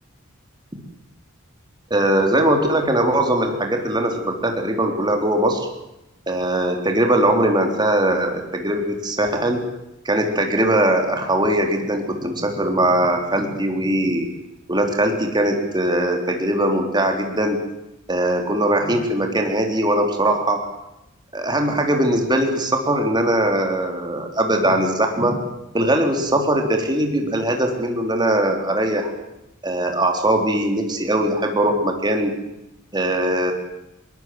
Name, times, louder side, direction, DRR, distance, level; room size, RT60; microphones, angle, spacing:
voice 1, 1.9-5.7 6.3-9.6 10.1-14.3 14.7-17.6 18.1-20.7 21.3-25.4 25.7-29.1 29.6-32.3 32.9-33.5, right 1 dB, 20° right, 3 dB, 3.6 m, -20 dB
22.0 x 21.5 x 7.8 m, 0.90 s
head